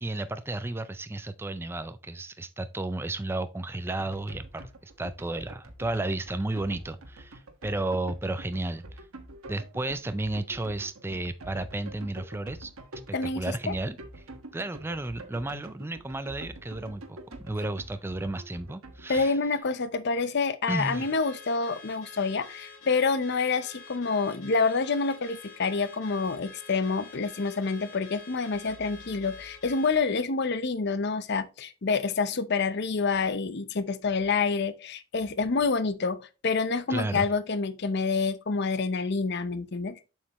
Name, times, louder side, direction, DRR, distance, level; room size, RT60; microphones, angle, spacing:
voice 1, 0.0-8.8 9.5-14.0 14.5-19.4 20.7-21.1 36.9-37.3, right 2 dB, 10° right, 0.4 m, -33 dB
sound 1, 4.0-19.5, right 1 dB, 90° right, 1.3 m, -46 dB
voice 2, 13.1-13.7 19.1-40.0, left 4 dB, 55° left, 0.6 m, -27 dB
Car / Alarm, 20.8-30.1, left 4 dB, 80° left, 2.4 m, -48 dB
7.2 x 6.5 x 3.0 m
head